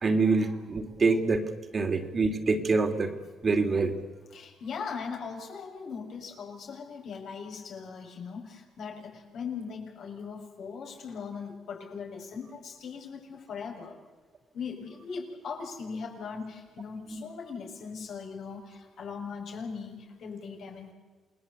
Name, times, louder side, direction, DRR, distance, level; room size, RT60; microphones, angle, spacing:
voice 1, 0.0-3.1 3.4-4.0 17.1-17.2, right 3 dB, 40° right, 6 dB, 2.8 m, -26 dB
voice 2, 4.3-14.0 14.5-20.9, left 5 dB, 65° left, 1 dB, 6.8 m, -39 dB
28.5 x 20.0 x 8.3 m, 1.4 s
cardioid pair, 90°, 0 cm